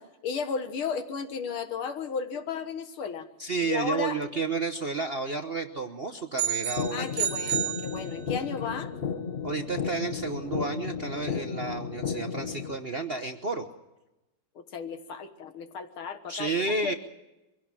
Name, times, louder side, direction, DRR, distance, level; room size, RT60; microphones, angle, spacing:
voice 1, 0.0-3.3 3.6-4.2 6.9-8.9 14.6-16.5 16.8-17.0, left 5 dB, 85° left, 8 dB, 2.3 m, -34 dB
voice 2, 3.4-7.1 9.4-13.6 16.3-16.9, right 3 dB, 45° right, 6 dB, 0.8 m, -31 dB
sound 1, 6.4-8.5, right 11 dB, 75° right, 2.2 m, -31 dB
sound 2, 6.8-12.8, left 6 dB, 65° left, 0.5 m, -34 dB
23.5 x 16.5 x 7.5 m, 0.99 s
omnidirectional pair, 2.3 m